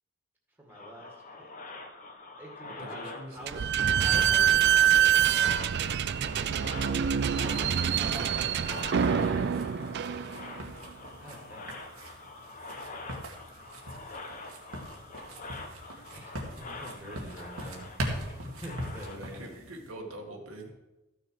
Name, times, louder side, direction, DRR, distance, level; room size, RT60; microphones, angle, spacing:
voice 1, 0.6-1.1 1.4-1.5 2.4-3.6 4.0-6.7 8.0-9.4 11.1-11.7 16.1-19.6, equal, 10° right, -1 dB, 1.9 m, -46 dB
sound 1, 0.7-19.2, left 3 dB, 35° left, 1.0 m, -44 dB
voice 2, 2.6-3.7 6.9-7.5 19.1-20.8, right 1 dB, 75° right, 1 dB, 1.7 m, -45 dB
Slam / Squeak, 3.5-10.7, right 9 dB, 50° right, 0.4 m, -25 dB
sound 2, 7.4-19.9, equal, 90° right, 2.0 m, -42 dB
13.5 x 6.5 x 4.8 m, 1.0 s
head